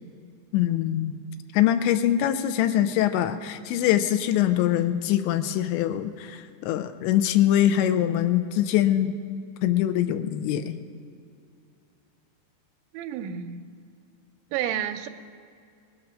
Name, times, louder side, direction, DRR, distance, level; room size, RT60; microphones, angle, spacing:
voice 1, 0.5-1.2 1.5-9.1 9.6-10.8, left 11 dB, 85° left, 9 dB, 2.9 m, -23 dB
voice 2, 12.9-13.7 14.5-15.1, right 10 dB, 85° right, 8 dB, 2.9 m, -30 dB
20.0 x 8.9 x 6.2 m, 2.4 s
omnidirectional pair, 5.3 m